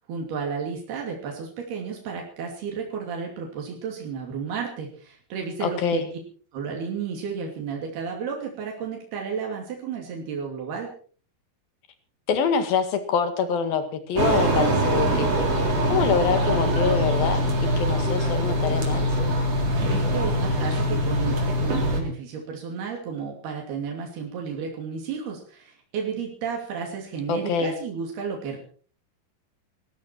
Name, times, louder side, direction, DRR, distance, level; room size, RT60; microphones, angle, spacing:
voice 1, 0.0-6.0 6.5-10.9 19.8-28.6, right 6 dB, 85° right, 0 dB, 4.8 m, -32 dB
voice 2, 5.6-6.0 12.3-15.3 15.9-19.1 27.3-27.8, left 6 dB, 70° left, 9 dB, 3.7 m, -25 dB
sound 1, 14.2-22.0, equal, 40° right, 4.7 m, -23 dB
19.0 x 15.5 x 4.6 m, 0.43 s
omnidirectional pair, 4.4 m